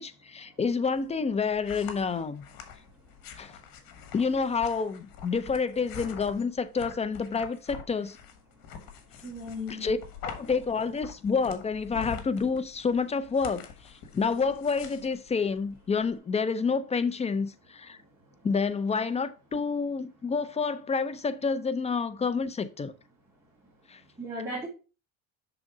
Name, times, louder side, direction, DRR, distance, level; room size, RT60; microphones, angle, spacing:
voice 1, 0.0-2.4 3.4-3.6 4.1-8.2 9.8-10.0 10.2-18.0 18.4-22.9 23.9-24.0, left 5 dB, 20° left, 0.3 m, -29 dB
sound 1, 0.9-16.2, left 7 dB, 65° left, 1.3 m, -45 dB
voice 2, 9.2-10.0 24.2-24.7, left 1 dB, 5° right, 2.0 m, -36 dB
6.1 x 3.8 x 4.8 m
cardioid pair, 115°, 38 cm